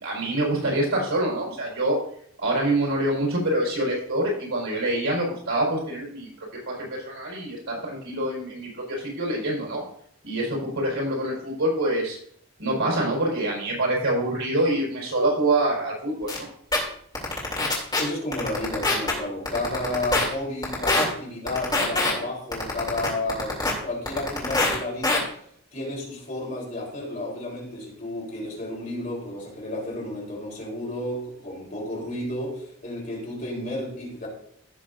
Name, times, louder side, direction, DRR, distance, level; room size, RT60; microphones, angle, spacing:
voice 1, 0.0-2.0 2.4-6.3 6.7-9.8 10.2-12.2 12.6-16.5, right 1 dB, 75° right, -3 dB, 4.6 m, -25 dB
sound 1, 16.3-16.4 16.7-16.8 17.1-18.0 18.3-19.1 19.5-20.2 20.6-21.0 21.5-22.1 22.5-23.7 24.1-24.7 25.0-25.2, left 2 dB, 20° left, 2.9 m, -23 dB
voice 2, 18.0-25.2 25.7-34.3, left 1 dB, 40° left, -4 dB, 4.1 m, -32 dB
16.0 x 6.6 x 2.6 m, 0.65 s
head